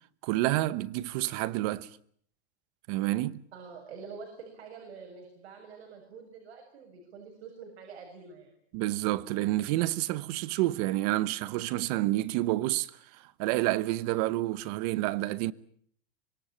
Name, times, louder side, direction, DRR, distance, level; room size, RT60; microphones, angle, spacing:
voice 1, 0.2-1.9 2.9-3.4 8.7-15.5, right 17 dB, 40° right, 1.0 m, -29 dB
voice 2, 3.5-8.5, right 5 dB, 80° right, 7.2 m, -46 dB
25.5 x 21.5 x 8.8 m
supercardioid pair, 170°, 32 cm